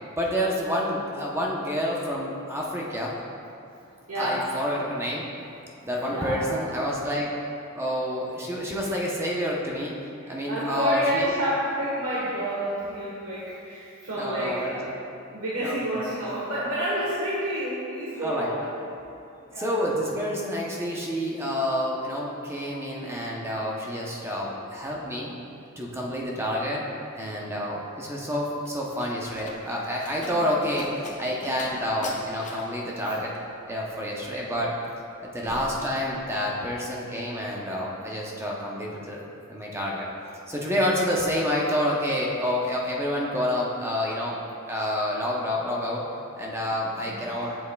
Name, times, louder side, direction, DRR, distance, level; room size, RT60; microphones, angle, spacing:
voice 1, 0.1-3.1 4.2-5.2 5.8-7.3 7.7-9.9 10.3-11.3 14.2-14.8 15.6-16.1 18.2-18.5 19.6-25.3 25.8-26.8 27.1-30.9 31.2-33.3 33.7-34.7 35.2-39.2 39.5-40.1 40.5-44.4 44.7-46.0 46.4-47.6, equal, 15° right, -3 dB, 0.7 m, -28 dB
voice 2, 4.1-4.5 6.1-6.5 8.8-9.0 10.2-18.8 19.4-19.8 30.3-30.5 35.4-35.6 46.9-47.5, right 1 dB, 85° right, -8 dB, 1.3 m, -30 dB
Slam, 28.6-36.6 36.9-37.4, left 2 dB, 35° left, 0.6 m, -44 dB
8.3 x 7.1 x 2.3 m, 2.6 s
head